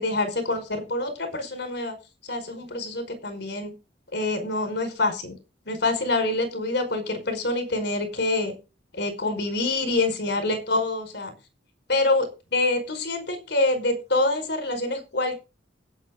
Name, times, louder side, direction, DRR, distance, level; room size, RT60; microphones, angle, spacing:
voice 1, 0.0-2.0 2.3-3.7 4.1-5.3 5.7-8.5 8.9-11.3 11.9-15.4, left 2 dB, 65° left, 8 dB, 5.0 m, -26 dB
16.5 x 9.4 x 3.8 m, 0.28 s
head